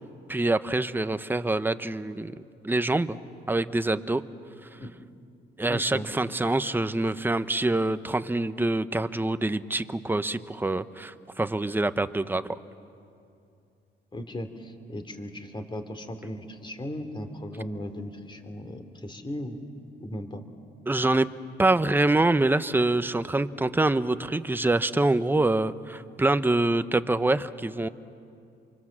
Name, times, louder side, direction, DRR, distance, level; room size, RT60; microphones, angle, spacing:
voice 1, 0.3-2.4 2.6-3.2 3.5-4.2 5.6-12.6 20.9-21.3 21.6-27.9, right 2 dB, 10° right, 12 dB, 0.8 m, -25 dB
voice 2, 5.7-6.1 14.1-19.6 20.0-20.4, left 1 dB, 25° left, 7 dB, 2.7 m, -37 dB
28.0 x 24.0 x 7.4 m, 2.5 s
cardioid pair, 90°, 20 cm